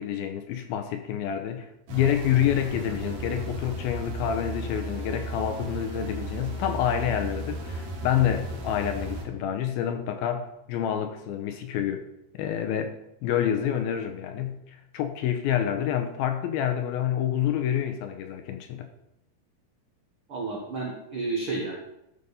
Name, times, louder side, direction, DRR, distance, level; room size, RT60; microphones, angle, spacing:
voice 1, 0.0-12.0 12.3-13.0 13.2-18.9, left 10 dB, 80° left, 7 dB, 2.3 m, -28 dB
sound 1, 1.9-9.2, right 1 dB, 55° right, 2.5 m, -35 dB
voice 2, 20.3-21.8, right 3 dB, 85° right, -2 dB, 1.1 m, -31 dB
13.5 x 5.2 x 4.1 m, 0.84 s
omnidirectional pair, 4.6 m